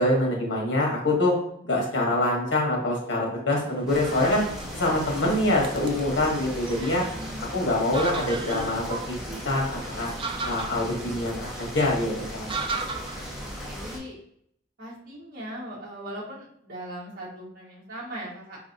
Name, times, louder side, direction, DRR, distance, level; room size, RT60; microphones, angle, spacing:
voice 1, 0.0-1.3 1.6-4.4 4.7-7.0 7.5-10.1 10.4-12.5, left 1 dB, 70° left, -1 dB, 1.1 m, -25 dB
sound 1, 3.5-13.7, right 4 dB, 30° right, 0.3 m, -38 dB
sound 2, 3.9-14.0, equal, 5° right, 1.3 m, -37 dB
voice 2, 7.1-7.5 13.4-14.2 14.8-18.6, right 1 dB, 55° right, -5 dB, 1.4 m, -39 dB
5.1 x 2.7 x 2.6 m, 0.68 s
head